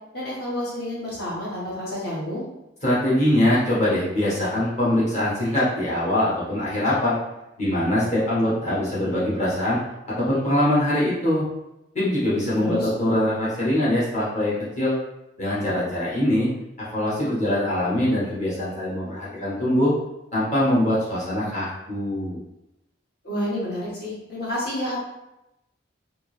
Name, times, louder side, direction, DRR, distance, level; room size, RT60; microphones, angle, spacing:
voice 1, 0.1-2.5 12.6-12.9 23.2-25.0, left 1 dB, 55° left, -7 dB, 1.5 m, -29 dB
voice 2, 2.8-7.1 7.6-9.8 10.2-11.4 11.9-14.9 15.4-16.5 16.9-19.9 20.3-22.4, left 1 dB, 35° left, -9 dB, 1.4 m, -23 dB
3.6 x 2.8 x 3.2 m, 0.91 s
head